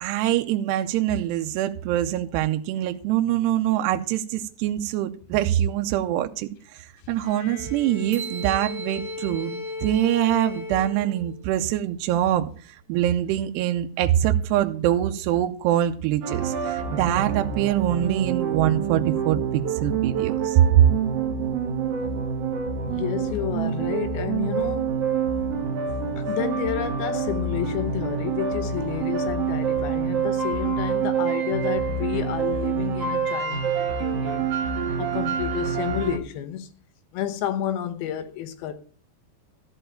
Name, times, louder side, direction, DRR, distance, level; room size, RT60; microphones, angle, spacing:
voice 1, 0.0-20.8, right 12 dB, 80° right, 2.7 m, -24 dB
Bowed string instrument, 7.2-11.6, left 3 dB, 55° left, 1.9 m, -36 dB
sound 1, 8.1-10.7, right 8 dB, 45° right, 1.6 m, -41 dB
sound 2, 16.2-36.2, right 6 dB, 65° right, 1.5 m, -27 dB
voice 2, 22.8-24.9 26.2-34.5 35.0-36.7 37.1-38.7, left 11 dB, 75° left, 2.6 m, -30 dB
13.5 x 4.7 x 8.9 m
omnidirectional pair, 4.9 m